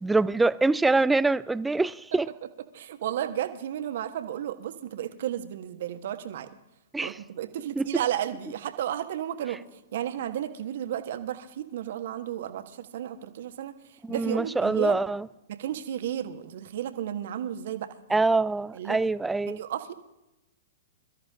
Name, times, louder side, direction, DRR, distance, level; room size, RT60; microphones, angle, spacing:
voice 1, 0.0-2.3 6.9-7.1 7.8-7.9 14.0-15.3 18.1-19.6, right 3 dB, 5° right, 0.4 m, -24 dB
voice 2, 2.7-6.5 7.0-9.6 9.9-15.0 15.5-18.2 18.7-19.0 19.5-19.9, right 11 dB, 60° right, 1.5 m, -33 dB
22.5 x 13.5 x 3.7 m
hypercardioid pair, 115°, 0 cm